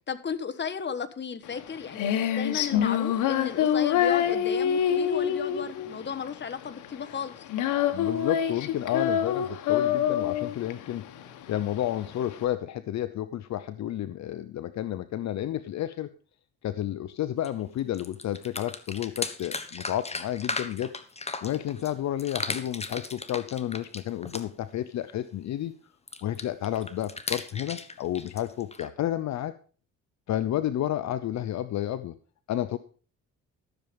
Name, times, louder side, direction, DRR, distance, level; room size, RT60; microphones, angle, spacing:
voice 1, 0.1-7.4, left 6 dB, 35° left, 9 dB, 1.3 m, -35 dB
Female singing, 1.4-12.4, left 9 dB, 85° left, 1.3 m, -26 dB
voice 2, 7.9-11.1 11.5-16.1 16.6-20.9 21.4-25.7 26.2-29.5 30.3-32.1 32.5-32.8, left 12 dB, 65° left, 13 dB, 0.7 m, -31 dB
sound 1, 17.4-17.5 17.8-21.9 22.2-24.7 26.1-28.9, left 3 dB, 20° left, 1.3 m, -36 dB
13.5 x 7.2 x 5.2 m, 0.40 s
cardioid pair, 90°, 30 cm